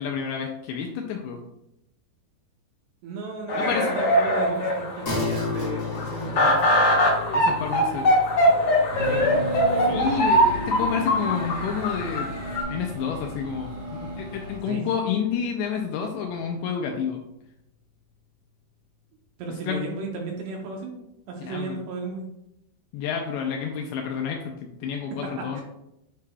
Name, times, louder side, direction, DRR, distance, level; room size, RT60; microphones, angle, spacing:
voice 1, 0.0-1.4 3.5-3.9 7.3-8.1 9.9-12.3 12.7-17.2 19.7-19.8 21.4-21.8 22.9-25.6, left 7 dB, 80° left, 2 dB, 2.5 m, -29 dB
voice 2, 3.0-6.6 9.0-9.6 14.7-14.9 19.4-22.3 25.6-25.7, right 3 dB, 75° right, 0 dB, 2.7 m, -34 dB
sound 1, 3.5-12.6, equal, 45° left, 2.0 m, -22 dB
sound 2, 5.0-14.8, left 4 dB, 65° left, 0.9 m, -36 dB
sound 3, 8.9-14.6, equal, 50° right, 2.3 m, -34 dB
8.3 x 5.0 x 2.3 m, 0.84 s
omnidirectional pair, 5.4 m